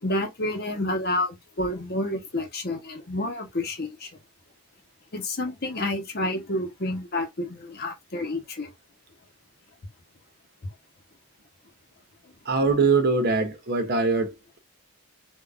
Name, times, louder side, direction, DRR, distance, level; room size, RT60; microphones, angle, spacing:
voice 1, 0.0-4.1 5.1-8.7, left 1 dB, 45° left, 0.9 m, -29 dB
voice 2, 12.4-14.6, right 4 dB, 45° right, 0.6 m, -23 dB
3.7 x 2.4 x 2.3 m
head